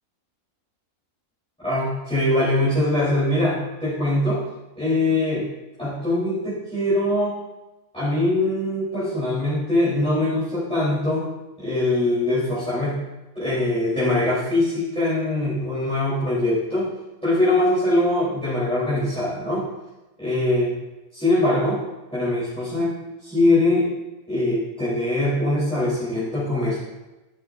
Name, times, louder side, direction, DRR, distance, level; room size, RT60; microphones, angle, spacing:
voice 1, 1.6-4.4 4.8-5.5 5.8-7.4 7.9-11.3 11.6-13.0 13.4-16.9 17.2-19.7 20.2-20.7 21.1-21.8 22.1-22.9 23.2-23.9 24.3-26.8, left 1 dB, 5° left, -11 dB, 3.5 m, -22 dB
11.5 x 11.5 x 2.6 m, 1.1 s
omnidirectional pair, 1.5 m